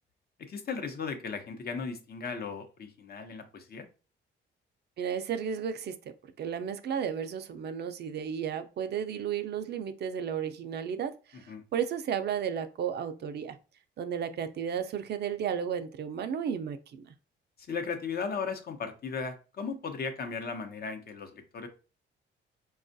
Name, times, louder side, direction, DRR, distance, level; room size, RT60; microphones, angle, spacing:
voice 1, 0.5-3.8 11.3-11.6 17.7-21.7, left 5 dB, 50° left, 6 dB, 0.8 m, -36 dB
voice 2, 5.0-6.0 6.4-13.6 14.0-17.1, right 8 dB, 55° right, 9 dB, 0.5 m, -33 dB
4.4 x 2.3 x 2.6 m, 0.33 s
cardioid pair, 90°, 20 cm